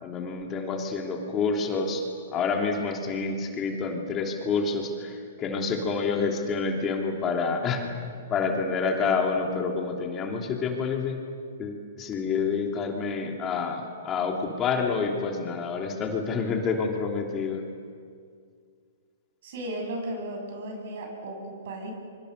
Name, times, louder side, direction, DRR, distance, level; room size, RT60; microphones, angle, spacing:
voice 1, 0.0-2.0 2.3-7.9 8.3-11.2 11.6-17.6, left 4 dB, 25° left, 1 dB, 3.0 m, -28 dB
voice 2, 19.4-21.9, right 1 dB, 65° right, 2 dB, 7.9 m, -35 dB
26.0 x 24.5 x 6.8 m, 2.2 s
hypercardioid pair, 130°, 0 cm